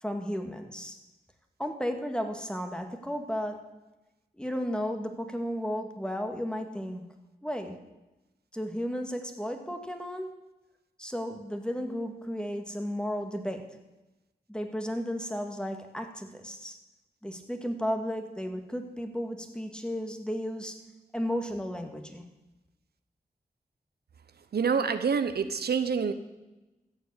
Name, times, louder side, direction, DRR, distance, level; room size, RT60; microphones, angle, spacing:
voice 1, 0.0-1.0 1.6-3.6 4.4-7.0 7.4-7.8 8.5-10.3 11.0-13.6 14.5-16.8 17.2-20.8 21.1-22.2, equal, 5° left, 5 dB, 1.9 m, -34 dB
voice 2, 24.5-26.1, right 6 dB, 80° right, 10 dB, 0.8 m, -27 dB
14.0 x 7.6 x 8.3 m, 1.0 s
cardioid pair, 60°, 16 cm